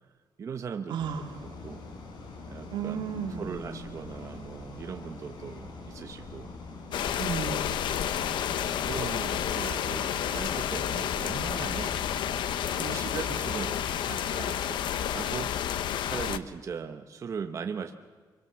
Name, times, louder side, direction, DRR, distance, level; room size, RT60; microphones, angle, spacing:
voice 1, 0.4-1.0 1.6-1.8 2.5-3.0 3.4-6.5 7.0-7.2 8.8-11.9 12.9-13.8 14.0-14.8 15.1-15.5 16.0-17.9, right 6 dB, 40° right, 6 dB, 1.0 m, -38 dB
voice 2, 0.9-1.6 2.7-3.8 7.2-8.6 12.8-13.0, right 7 dB, 80° right, 4 dB, 2.8 m, -36 dB
sound 1, 1.0-14.4, left 3 dB, 70° left, 5.5 m, -44 dB
sound 2, 6.9-16.4, left 10 dB, 85° left, 1.0 m, -30 dB
24.5 x 24.0 x 7.5 m, 1.5 s
cardioid pair, 145°, 8 cm